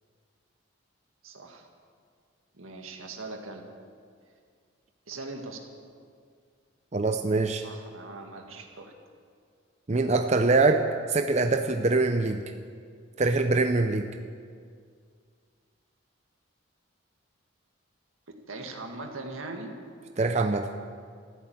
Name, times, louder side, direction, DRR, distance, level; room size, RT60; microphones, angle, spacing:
voice 1, 1.2-1.7 2.5-3.7 5.1-5.6 7.6-8.9 18.3-19.7, right 3 dB, 80° right, 3 dB, 2.0 m, -40 dB
voice 2, 6.9-7.7 9.9-12.4 13.2-14.1 20.2-20.7, right 3 dB, 35° right, 6 dB, 0.6 m, -24 dB
14.0 x 12.0 x 8.7 m, 2.1 s
head